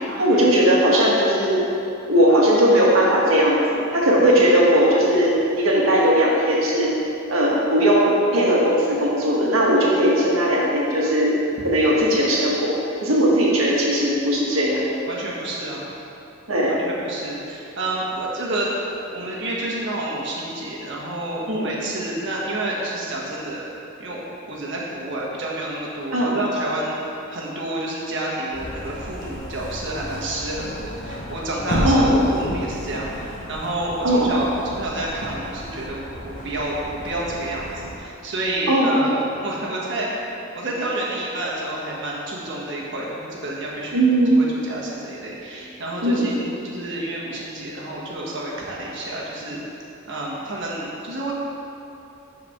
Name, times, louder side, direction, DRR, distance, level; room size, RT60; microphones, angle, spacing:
voice 1, 0.1-1.6 2.1-6.9 7.3-11.3 11.6-12.7 13.0-14.8 16.5-16.8 21.5-21.7 26.1-26.3 31.8-32.2 34.0-34.3 38.7-39.1 43.9-44.3 46.0-46.3, equal, 90° right, -5 dB, 1.7 m, -18 dB
voice 2, 15.1-15.8 16.7-18.7 19.1-23.6 24.0-40.1 40.5-49.6 50.0-51.3, right 1 dB, 60° right, -4 dB, 1.5 m, -29 dB
sound 1, 28.5-38.0, equal, 40° left, 1.2 m, -32 dB
12.0 x 4.7 x 3.6 m, 2.8 s
head